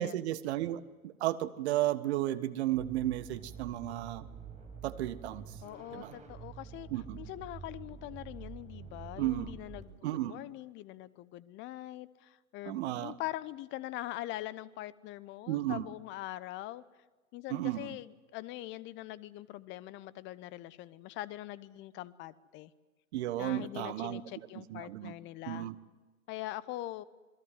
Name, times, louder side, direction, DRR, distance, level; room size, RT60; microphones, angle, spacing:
voice 1, 0.0-4.3 4.8-5.5 5.9-6.1 6.9-7.2 9.2-9.5 10.0-10.4 12.6-13.1 15.5-15.8 17.5-17.9 23.1-24.2 24.5-25.1 25.5-25.8, right 14 dB, 50° right, 14 dB, 1.5 m, -33 dB
sound 1, 2.7-9.8, right 6 dB, 15° right, 6.4 m, -48 dB
voice 2, 5.6-6.9 7.2-16.8 17.3-22.7 23.3-25.7 26.3-27.0, left 16 dB, 25° left, 18 dB, 0.9 m, -43 dB
27.5 x 22.0 x 7.9 m, 1.2 s
figure-of-eight pair, 110°, 42 cm